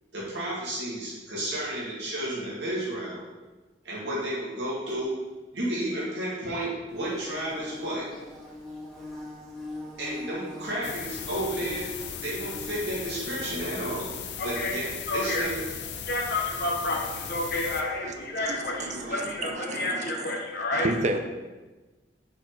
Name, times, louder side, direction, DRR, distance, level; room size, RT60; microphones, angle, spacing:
voice 1, 0.1-3.2 3.8-5.2 5.5-8.1 10.0-11.9 12.2-14.1 14.4-15.6, right 1 dB, 75° right, -7 dB, 2.2 m, -32 dB
Bird / Buzz, 6.9-19.5, left 1 dB, ahead, 1.7 m, -45 dB
sound 1, 10.8-17.8, left 8 dB, 75° left, 0.6 m, -37 dB
voice 2, 14.4-15.6 16.1-20.9, left 2 dB, 60° left, -2 dB, 1.1 m, -30 dB
voice 3, 18.4-20.3 20.7-21.2, right 2 dB, 40° right, 5 dB, 0.6 m, -31 dB
6.3 x 4.1 x 4.7 m, 1.2 s
head